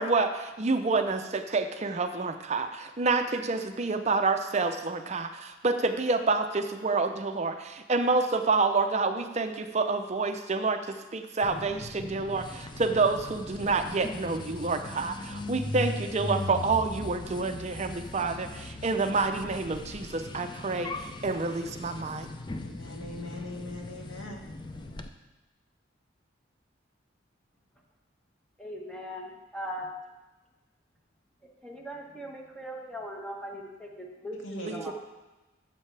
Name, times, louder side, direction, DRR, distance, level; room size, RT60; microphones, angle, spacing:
voice 1, 0.0-22.3 34.7-34.9, right 3 dB, 35° right, 0.5 m, -28 dB
sound 1, 11.4-25.1, left 2 dB, 25° left, 0.4 m, -39 dB
voice 2, 22.6-24.4 34.4-34.9, left 1 dB, 90° left, 1.7 m, -40 dB
voice 3, 28.6-29.9 31.6-34.9, equal, 5° left, 1.2 m, -39 dB
12.5 x 7.4 x 3.3 m
head